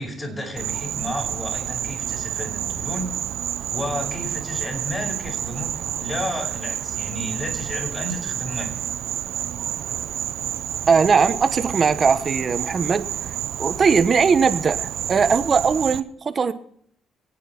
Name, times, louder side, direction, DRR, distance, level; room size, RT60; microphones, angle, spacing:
voice 1, 0.0-3.1 3.7-8.7, equal, 25° left, 1 dB, 5.4 m, -32 dB
Insect, 0.6-16.0, right 10 dB, 70° right, 0.6 m, -29 dB
voice 2, 10.9-13.1 13.6-16.5, right 5 dB, 40° right, 11 dB, 1.1 m, -19 dB
24.0 x 9.1 x 4.5 m, 0.65 s
cardioid pair, 90°, 0 cm